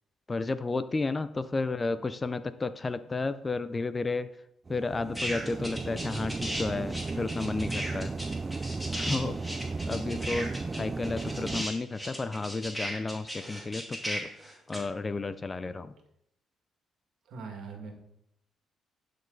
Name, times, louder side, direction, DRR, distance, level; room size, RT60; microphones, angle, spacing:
voice 1, 0.3-4.3 4.7-8.2 8.9-9.4 9.9-10.5 10.8-14.3 14.7-15.9, left 3 dB, 25° left, 13 dB, 0.6 m, -32 dB
sound 1, 4.7-11.6, right 3 dB, 30° right, 0.4 m, -35 dB
sound 2, 5.1-6.6 6.9-14.8, equal, 5° left, 2.8 m, -36 dB
voice 2, 17.3-17.9, right 4 dB, 75° right, 3 dB, 2.0 m, -42 dB
11.0 x 6.5 x 4.0 m, 0.77 s
cardioid pair, 90°, 0 cm